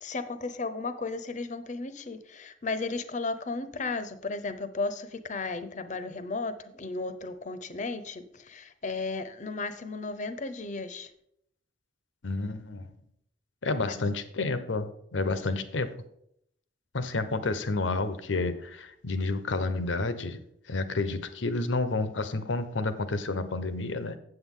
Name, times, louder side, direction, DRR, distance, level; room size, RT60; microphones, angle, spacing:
voice 1, 0.0-11.1 13.8-14.0 15.5-15.6, left 3 dB, 40° left, 11 dB, 0.7 m, -34 dB
voice 2, 12.2-12.9 13.6-15.9 16.9-20.4 20.7-24.2, left 3 dB, 90° left, 12 dB, 0.8 m, -30 dB
8.0 x 7.7 x 3.7 m, 0.72 s
head